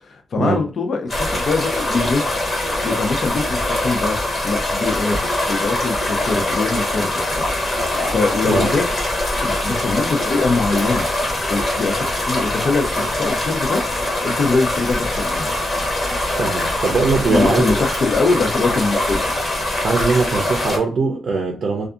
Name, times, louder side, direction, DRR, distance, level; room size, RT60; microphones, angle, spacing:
voice 1, 0.0-2.3 2.8-4.2 4.4-7.5 8.1-8.9 9.4-11.1 11.5-13.8 14.2-15.5 17.3-19.2, left 3 dB, 50° left, 0.5 m, -22 dB
sound 1, 1.1-20.8, left 1 dB, 35° left, 0.9 m, -22 dB
voice 2, 16.4-17.7 19.8-21.9, right 4 dB, 50° right, 0.5 m, -20 dB
2.6 x 2.3 x 2.3 m
wide cardioid pair, 145°, 0 cm